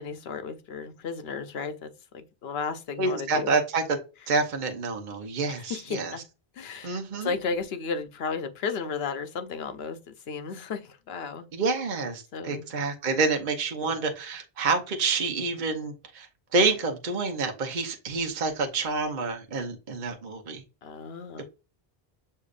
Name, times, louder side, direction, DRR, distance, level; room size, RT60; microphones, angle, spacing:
voice 1, 0.0-3.5 5.7-6.2 6.6-11.5 12.3-12.6 20.8-21.4, left 5 dB, 75° left, 0.9 m, -34 dB
voice 2, 3.0-4.0 4.3-6.1 6.8-7.3 11.5-20.6 21.4-21.5, right 3 dB, 50° right, 0.9 m, -28 dB
6.5 x 2.7 x 2.4 m
omnidirectional pair, 1.0 m